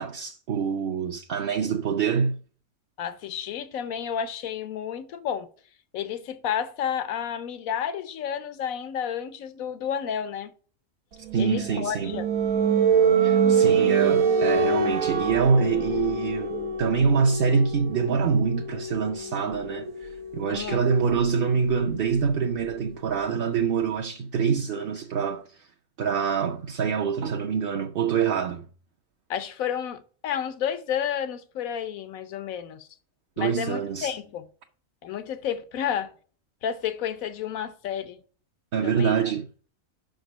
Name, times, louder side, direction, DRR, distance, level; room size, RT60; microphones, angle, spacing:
voice 1, 0.0-2.4 11.3-12.1 13.2-16.5 16.8-25.7 26.0-28.6 33.4-34.1 38.7-39.5, right 6 dB, 55° right, 0.7 m, -25 dB
voice 2, 3.0-5.5 5.9-10.5 11.4-12.3 20.5-20.8 29.3-32.9 33.4-34.5 35.0-36.1 36.6-38.2 38.8-39.1, left 8 dB, 90° left, 1.2 m, -31 dB
sound 1, 11.3-22.8, right 5 dB, 85° right, 1.3 m, -26 dB
6.0 x 5.1 x 6.1 m
omnidirectional pair, 1.4 m